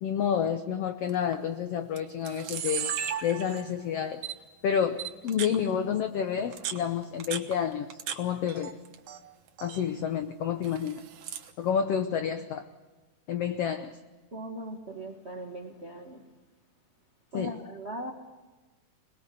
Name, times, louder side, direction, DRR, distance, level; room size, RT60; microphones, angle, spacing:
voice 1, 0.0-2.9 3.2-4.2 4.6-8.8 9.6-11.0 11.6-12.6 13.3-14.0 17.3-17.5, left 8 dB, 80° left, 1.3 m, -29 dB
Camera, 1.1-1.3 2.0-2.1 2.2-3.8 4.2-4.3 5.0-5.6 6.4-8.2 8.5-9.2 9.5-9.8 10.6-11.5, right 9 dB, 65° right, 2.6 m, -35 dB
voice 2, 14.3-16.3 17.3-18.1, right 1 dB, 45° right, 0.8 m, -39 dB
26.0 x 20.5 x 6.9 m
omnidirectional pair, 4.0 m